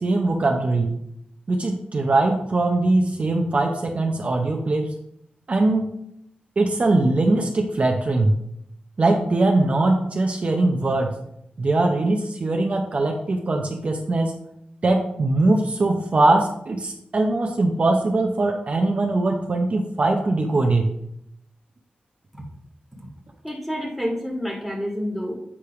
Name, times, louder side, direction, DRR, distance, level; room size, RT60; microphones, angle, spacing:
voice 1, 0.0-0.9 1.5-4.9 5.5-5.9 6.6-8.3 9.0-11.1 11.6-14.3 14.8-20.9, right 2 dB, 45° right, 2 dB, 0.8 m, -21 dB
voice 2, 23.4-25.3, equal, ahead, -2 dB, 1.7 m, -29 dB
8.5 x 3.4 x 5.7 m, 0.75 s
wide cardioid pair, 150°, 3 cm